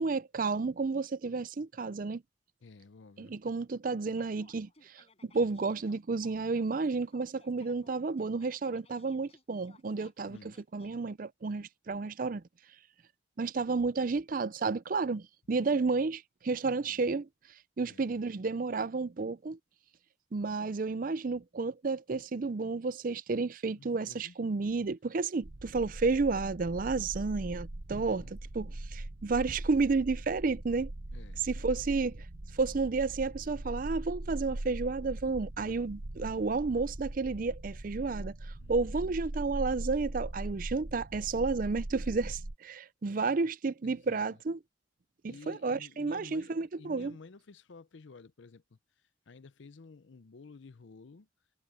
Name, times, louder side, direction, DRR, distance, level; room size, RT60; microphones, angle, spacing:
voice 1, 0.0-2.2 3.2-12.4 13.4-17.3 17.8-19.6 20.3-30.9 31.4-32.3 32.5-44.6 45.2-47.2, right 4 dB, 45° right, 0.5 m, -31 dB
voice 2, 2.6-3.3 10.3-10.6 16.6-17.0 17.8-18.0 23.8-24.3 27.9-28.3 31.1-31.4 38.6-39.1 43.8-44.2 45.3-46.5 46.8-48.6 49.3-51.3, left 4 dB, 75° left, 0.6 m, -52 dB
sound 1, 4.2-10.9, left 3 dB, 30° left, 7.4 m, -62 dB
sound 2, 25.4-42.5, right 1 dB, 85° right, 1.2 m, -41 dB
head